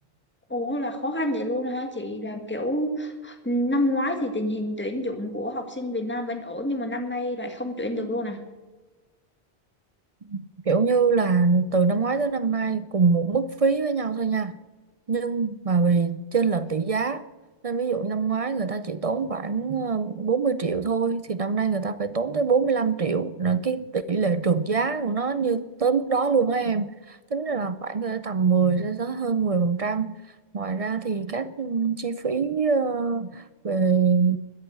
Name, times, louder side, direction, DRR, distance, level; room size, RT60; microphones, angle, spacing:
voice 1, 0.5-8.4, left 1 dB, 10° left, 1.6 m, -28 dB
voice 2, 10.2-14.6 15.1-17.3 17.6-30.2 30.5-34.4, right 5 dB, 45° right, 0.5 m, -24 dB
13.5 x 7.9 x 8.1 m
omnidirectional pair, 1.1 m